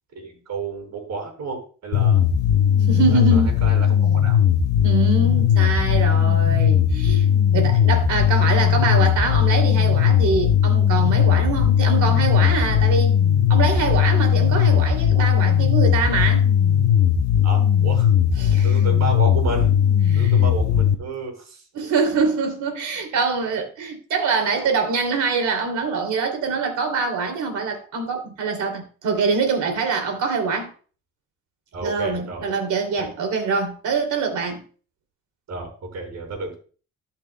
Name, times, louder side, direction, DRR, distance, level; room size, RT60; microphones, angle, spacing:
voice 1, 0.1-2.2 3.1-4.4 17.4-18.1 18.6-19.7 20.2-21.6 31.7-32.5 33.0-33.1 35.5-36.5, right 3 dB, 60° right, 3.8 m, -31 dB
sound 1, 1.9-20.9, left 9 dB, 65° left, 1.0 m, -18 dB
voice 2, 2.9-3.5 4.8-13.2 13.5-16.4 18.4-18.8 20.1-20.3 21.7-30.7 31.8-34.6, right 4 dB, 75° right, 2.8 m, -24 dB
15.5 x 5.8 x 2.2 m
cardioid pair, 90°, 30 cm